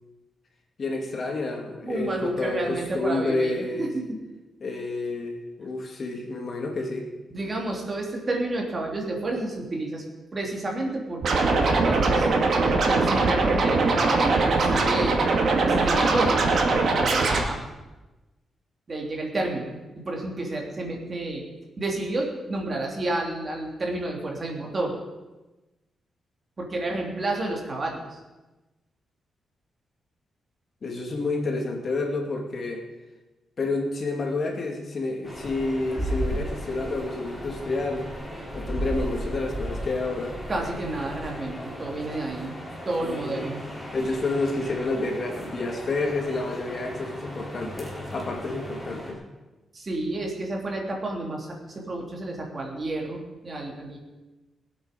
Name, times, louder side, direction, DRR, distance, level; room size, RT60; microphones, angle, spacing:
voice 1, 0.8-3.9 4.6-7.1 30.8-32.8 33.6-38.1 38.5-40.4 43.0-43.5 43.9-49.2, left 2 dB, 45° left, 1 dB, 2.6 m, -29 dB
voice 2, 1.8-4.0 7.3-10.0 10.3-12.3 12.7-15.2 15.6-17.6 18.9-21.4 21.8-25.0 26.6-28.2 40.5-42.5 42.8-43.6 49.7-54.0, right 2 dB, 35° right, 0 dB, 3.3 m, -30 dB
Scratching (performance technique), 11.2-17.4, right 3 dB, 60° right, 2.4 m, -21 dB
sound 1, 35.2-49.1, equal, 5° left, 4.1 m, -35 dB
22.0 x 8.6 x 5.3 m, 1.1 s
cardioid pair, 115°, 0 cm